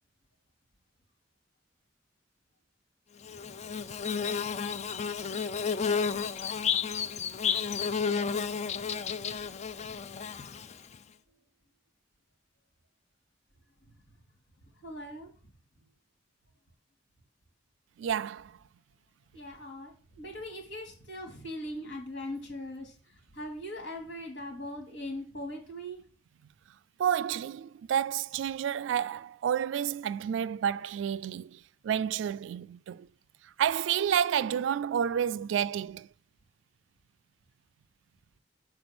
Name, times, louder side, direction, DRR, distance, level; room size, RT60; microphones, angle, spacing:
Bird / Buzz, 3.2-10.9, left 6 dB, 40° left, 0.4 m, -32 dB
voice 1, 14.8-15.3 19.3-22.9 23.3-26.0, left 1 dB, 75° left, 2.7 m, -40 dB
voice 2, 18.0-18.6 27.0-33.1 33.4-36.1, right 9 dB, 80° right, 0.3 m, -30 dB
6.8 x 4.6 x 6.0 m
head